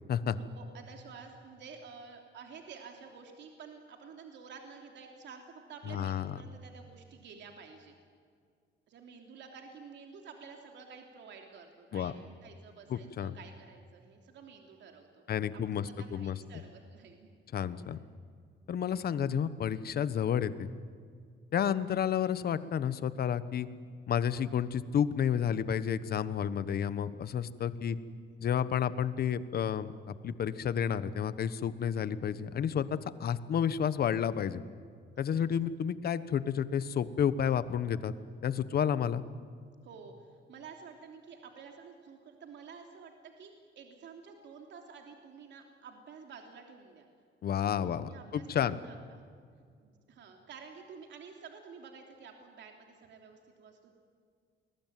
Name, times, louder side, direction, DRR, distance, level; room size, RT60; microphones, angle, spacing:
voice 1, 0.3-7.9 8.9-15.2 15.5-17.4 17.8-18.0 27.6-27.9 35.1-35.5 39.8-47.1 47.8-49.2 49.8-53.9, right 5 dB, 65° right, 3 dB, 3.1 m, -51 dB
voice 2, 5.9-6.3 11.9-12.1 12.9-13.3 15.3-16.4 17.5-18.0 18.7-20.7 21.5-23.7 24.1-28.0 28.4-34.6 35.2-38.1 38.4-39.2 47.4-48.8, left 8 dB, 55° left, 14 dB, 1.2 m, -31 dB
29.0 x 21.5 x 9.3 m, 2.2 s
cardioid pair, 135°, 20 cm